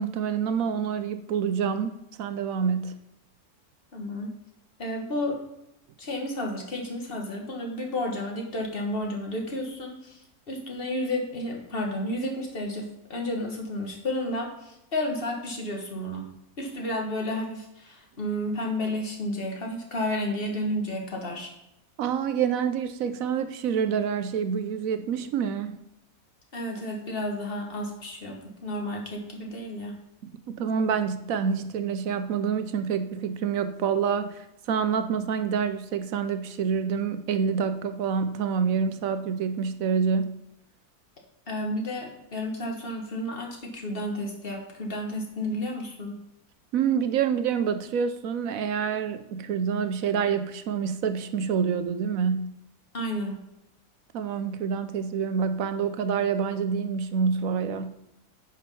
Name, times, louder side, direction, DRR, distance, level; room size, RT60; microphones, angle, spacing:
voice 1, 0.0-1.9 2.2-3.0 22.0-25.8 30.6-40.4 46.7-52.5 54.1-57.9, right 6 dB, 70° right, 1.1 m, -27 dB
voice 2, 3.9-4.3 4.8-5.4 6.0-10.2 10.5-16.3 16.6-21.5 26.5-30.0 41.5-46.1 52.9-53.4, left 1 dB, 40° left, 1.9 m, -31 dB
9.6 x 5.4 x 5.5 m
omnidirectional pair, 1.6 m